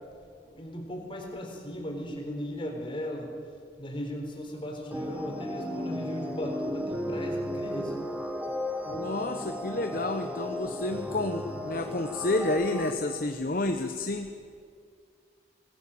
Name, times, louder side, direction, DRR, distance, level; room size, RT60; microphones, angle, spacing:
voice 1, 0.6-3.3 3.8-8.0, equal, 30° left, 1 dB, 4.0 m, -37 dB
sound 1, 4.9-12.9, equal, 10° right, 1.4 m, -34 dB
voice 2, 8.9-14.3, left 2 dB, 50° left, 6 dB, 0.9 m, -30 dB
19.5 x 16.5 x 8.6 m, 2.1 s
head